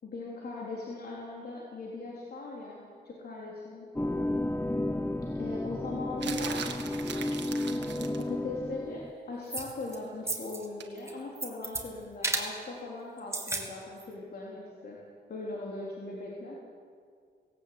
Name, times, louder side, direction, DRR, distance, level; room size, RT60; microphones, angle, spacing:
voice 1, 0.0-3.9 5.3-6.7 7.7-15.0 15.3-16.6, left 3 dB, 60° left, -4 dB, 3.8 m, -40 dB
sound 1, 4.0-9.1, left 1 dB, 10° left, 0.7 m, -32 dB
sound 2, 6.2-8.3 10.8-11.0, right 7 dB, 80° right, 1.8 m, -39 dB
sound 3, 9.5-10.0 10.3-10.7 11.0-11.8 12.2-12.5 13.2-13.7 14.0-14.1, right 2 dB, 15° right, 2.9 m, -33 dB
19.0 x 17.0 x 8.5 m, 2.1 s
cardioid pair, 95°, 18 cm